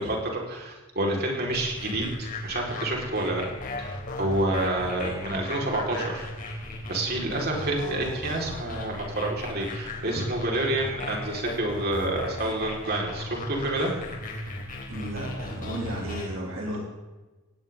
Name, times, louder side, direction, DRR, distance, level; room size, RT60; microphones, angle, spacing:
voice 1, 0.0-3.5 3.8-6.3 6.9-13.9, right 1 dB, 45° right, -1 dB, 4.8 m, -28 dB
sound 1, 1.5-16.3, left 1 dB, 40° left, 3.8 m, -36 dB
voice 2, 7.1-7.5 14.9-16.8, right 1 dB, 65° right, -2 dB, 3.2 m, -34 dB
19.5 x 17.0 x 3.9 m, 1.2 s
head